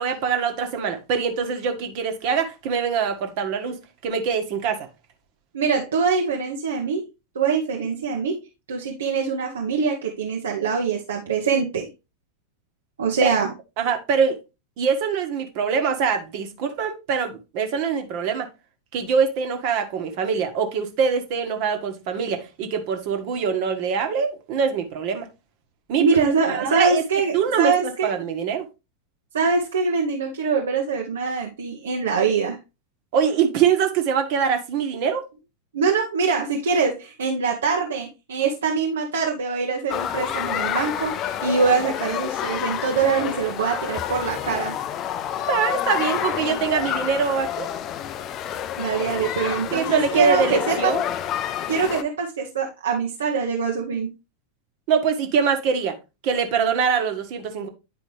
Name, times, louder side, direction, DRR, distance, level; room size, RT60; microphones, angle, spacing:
voice 1, 0.0-4.9 13.2-13.3 13.8-14.4 14.8-18.5 18.9-25.3 25.9-26.0 26.5-27.0 27.3-28.7 33.1-35.2 45.4-47.7 49.7-51.0 54.9-56.0 56.2-57.7, right 6 dB, 45° right, 1.3 m, -23 dB
voice 2, 5.5-7.0 7.3-8.4 8.7-11.9 13.0-13.5 26.0-28.1 29.3-32.6 35.7-44.8 48.8-50.9 51.7-54.1, right 5 dB, 65° right, 1.0 m, -23 dB
sound 1, 39.9-52.0, left 10 dB, 35° left, 0.5 m, -28 dB
9.7 x 4.9 x 3.2 m
figure-of-eight pair, 90°, 0 cm